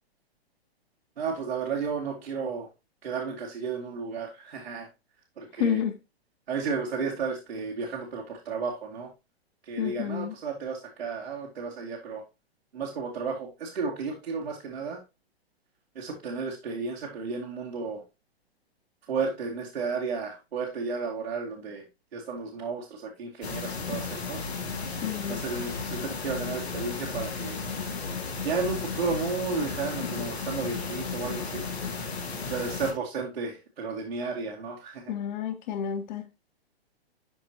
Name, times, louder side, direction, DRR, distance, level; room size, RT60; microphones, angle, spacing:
voice 1, 1.2-2.7 3.0-4.9 5.4-5.8 6.5-9.1 9.6-12.2 12.7-15.0 15.9-18.0 19.1-21.8 22.1-24.4 25.3-27.6 28.4-31.7 32.4-35.1, right 5 dB, 70° right, 2.4 m, -33 dB
voice 2, 5.6-5.9 9.8-10.3 25.0-25.4 35.1-36.2, left 8 dB, 45° left, 1.6 m, -29 dB
sound 1, 23.4-32.9, left 4 dB, 80° left, 2.4 m, -34 dB
12.5 x 4.4 x 2.9 m
figure-of-eight pair, 120°, 31 cm